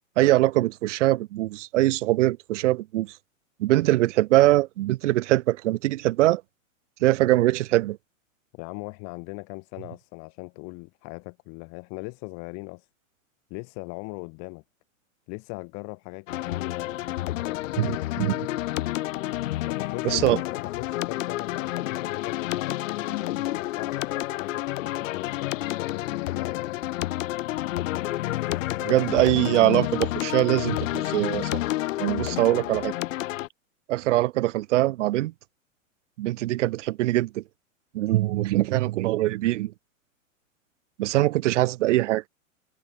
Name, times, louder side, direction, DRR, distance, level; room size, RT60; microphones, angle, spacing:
voice 1, 0.2-3.1 3.6-6.4 7.0-8.0 17.8-18.3 20.0-20.4 28.8-31.6 32.0-32.9 33.9-35.3 36.2-37.4 37.9-39.7 41.0-42.2, right 16 dB, 60° right, 0.8 m, -22 dB
voice 2, 8.5-12.9 13.5-14.6 15.3-18.0 19.6-26.8, left 35 dB, 40° left, 7.4 m, -39 dB
sound 1, 16.3-33.5, left 16 dB, 70° left, 0.6 m, -29 dB
hypercardioid pair, 135°, 40 cm